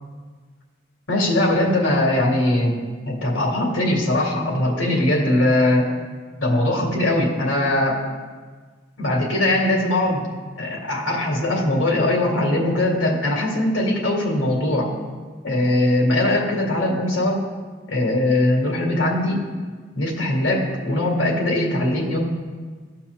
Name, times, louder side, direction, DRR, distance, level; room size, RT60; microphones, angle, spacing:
voice 1, 1.1-2.7 3.1-5.9 6.4-8.0 9.0-10.3 10.6-14.9 15.4-17.4 17.9-19.4 20.0-22.2, left 1 dB, 75° left, -1 dB, 1.8 m, -20 dB
17.0 x 5.7 x 2.3 m, 1.5 s
head